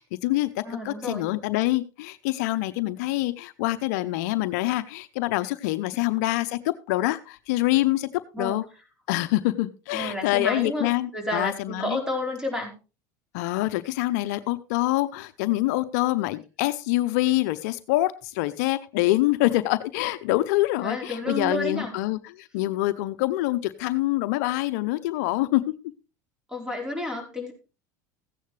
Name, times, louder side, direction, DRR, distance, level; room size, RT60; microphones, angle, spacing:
voice 1, 0.0-8.1 8.4-8.6 9.1-12.0 13.3-25.6, left 17 dB, 70° left, 13 dB, 0.7 m, -25 dB
voice 2, 0.6-1.3 5.9-6.0 8.3-8.6 9.9-12.7 20.8-21.9 26.5-27.5, left 1 dB, 5° right, 3 dB, 4.4 m, -31 dB
15.0 x 9.4 x 3.2 m, 0.32 s
hypercardioid pair, 90°, 9 cm